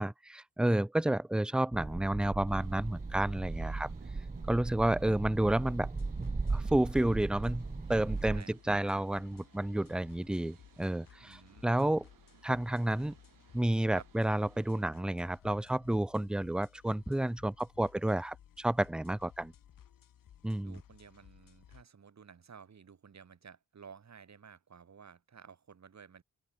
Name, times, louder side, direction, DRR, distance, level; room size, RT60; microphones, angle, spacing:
voice 1, 0.0-3.9 4.5-5.9 6.5-12.1 12.4-13.2 13.5-19.5 20.4-20.8, right 1 dB, 5° right, 0.3 m, -30 dB
sound 1, 1.7-8.4, right 3 dB, 20° right, 1.1 m, -37 dB
sound 2, 2.4-14.9, right 9 dB, 85° right, 3.2 m, -63 dB
sound 3, 5.6-21.8, left 10 dB, 85° left, 2.8 m, -59 dB
voice 2, 11.2-11.7 13.9-14.1 20.6-26.2, right 6 dB, 55° right, 5.9 m, -54 dB
cardioid pair, 100°, 32 cm